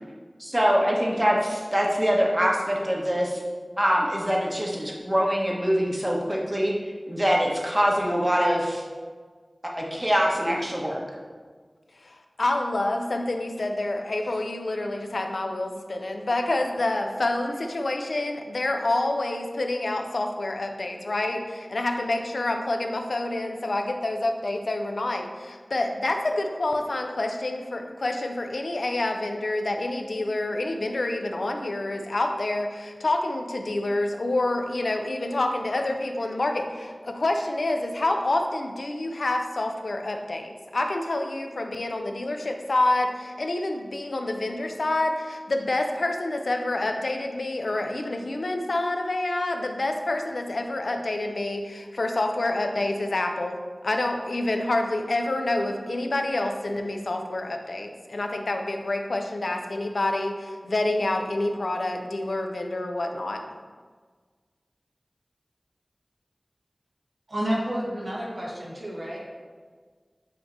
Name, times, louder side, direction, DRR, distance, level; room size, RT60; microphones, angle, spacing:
voice 1, 0.4-3.4 3.8-8.8 10.0-11.0, equal, 20° right, -2 dB, 1.1 m, -24 dB
voice 2, 12.4-53.6 53.8-63.4, left 2 dB, 85° left, 4 dB, 0.5 m, -27 dB
voice 3, 67.3-69.2, equal, 70° right, -5 dB, 1.7 m, -30 dB
8.2 x 2.9 x 4.3 m, 1.6 s
wide cardioid pair, 55°, 0 cm